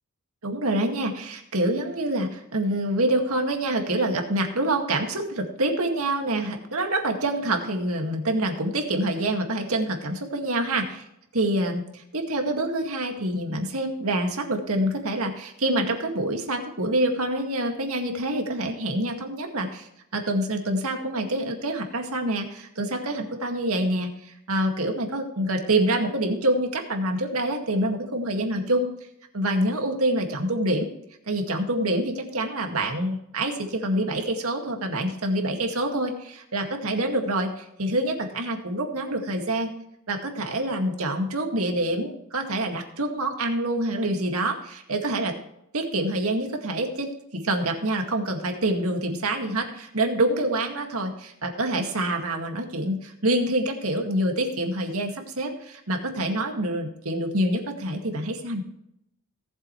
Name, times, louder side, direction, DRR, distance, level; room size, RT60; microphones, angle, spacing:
voice 1, 0.4-11.0 11.3-19.9 20.1-28.9 29.3-30.9 31.3-39.7 40.1-45.3 45.7-58.6, right 1 dB, 75° right, 3 dB, 2.0 m, -26 dB
18.5 x 7.6 x 3.2 m, 0.78 s
head